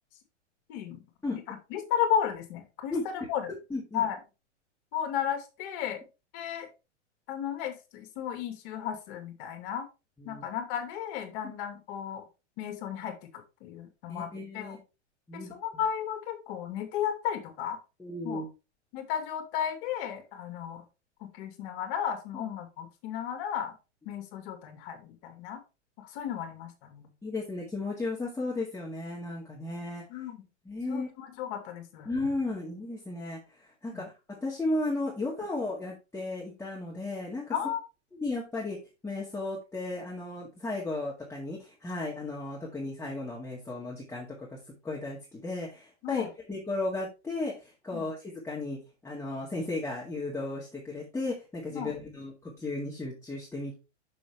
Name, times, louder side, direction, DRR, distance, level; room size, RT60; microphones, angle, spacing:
voice 1, 0.7-1.0 1.3-3.5 3.9-4.2 4.9-6.0 6.3-6.7 7.3-9.9 10.2-12.2 12.6-14.8 15.3-17.8 18.2-18.4 18.9-20.8 21.2-23.7 24.1-25.6 26.0-27.1 30.1-30.5 30.9-32.1 33.9-34.1 37.5-37.8 46.0-46.3 47.9-48.1 51.7-51.9, left 9 dB, 50° left, 6 dB, 2.3 m, -34 dB
voice 2, 3.7-4.0 10.2-10.5 11.4-11.5 14.1-14.8 15.3-15.6 18.0-18.5 22.3-22.5 27.2-30.0 30.7-31.1 32.1-34.1 34.4-37.5 38.1-38.8 39.0-44.6 44.8-53.7, left 2 dB, 5° left, -5 dB, 1.9 m, -35 dB
6.6 x 6.1 x 3.4 m, 0.28 s
hypercardioid pair, 105°, 36 cm